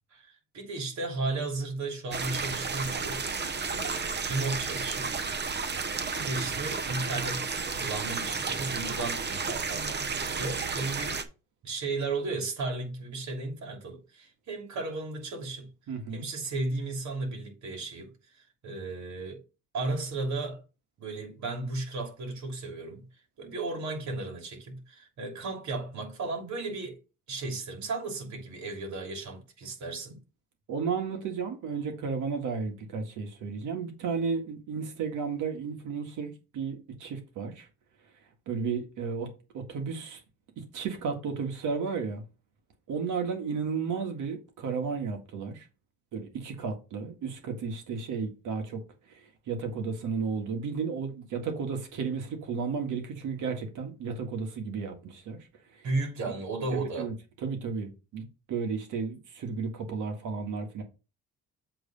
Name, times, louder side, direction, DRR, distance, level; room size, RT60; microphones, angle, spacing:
voice 1, 0.1-3.2 3.7-5.1 6.1-11.2 11.6-15.7 16.1-19.4 19.7-20.6 21.0-23.0 23.4-27.0 27.3-30.2 55.8-57.1, right 3 dB, 65° right, 2.9 m, -35 dB
sound 1, 2.1-11.2, right 5 dB, 35° right, 0.9 m, -32 dB
voice 2, 15.9-16.3 30.7-37.7 38.5-40.2 40.6-42.2 42.9-45.7 46.1-48.8 49.1-55.4 56.7-57.1 57.4-60.8, right 5 dB, 85° right, 1.8 m, -33 dB
7.8 x 3.4 x 5.3 m
cardioid pair, 90°, 30 cm